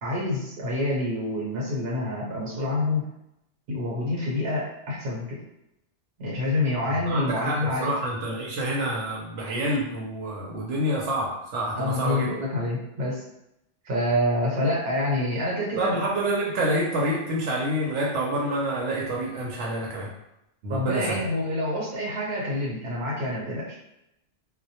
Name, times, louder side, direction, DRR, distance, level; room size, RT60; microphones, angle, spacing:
voice 1, 0.0-3.1 3.7-5.4 6.2-7.9 11.7-13.2 13.8-16.0 20.7-23.8, left 1 dB, 60° right, -4 dB, 1.0 m, -27 dB
voice 2, 7.1-12.3 15.8-20.1 20.6-21.2, right 1 dB, 85° right, -3 dB, 0.9 m, -27 dB
2.1 x 2.1 x 2.8 m, 0.84 s
omnidirectional pair, 1.2 m